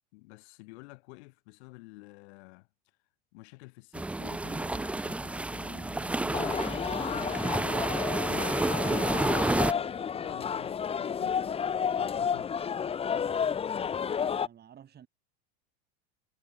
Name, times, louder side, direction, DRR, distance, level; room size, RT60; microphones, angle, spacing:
voice 1, 0.1-2.7 3.3-11.4 11.9-12.6, left 25 dB, 70° left, 3.2 m, -50 dB
sound 1, 3.9-9.7, right 2 dB, 5° right, 0.4 m, -30 dB
sound 2, 6.3-14.5, left 7 dB, 15° left, 0.8 m, -31 dB
voice 2, 13.8-15.1, right 9 dB, 30° right, 5.7 m, -54 dB
supercardioid pair, 135°, 35 cm